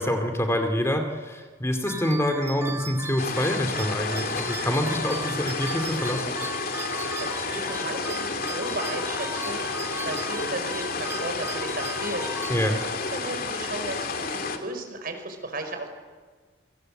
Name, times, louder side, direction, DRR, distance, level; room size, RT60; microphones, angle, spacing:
voice 1, 0.0-6.4 12.5-12.8, equal, 15° left, 5 dB, 2.5 m, -26 dB
sound 1, 1.9-13.1, right 2 dB, 15° right, 1.5 m, -37 dB
sound 2, 3.2-14.6, left 4 dB, 50° left, 2.7 m, -31 dB
voice 2, 7.2-12.5 13.1-15.9, right 2 dB, 50° right, 6 dB, 5.4 m, -35 dB
28.0 x 24.5 x 7.9 m, 1.5 s
head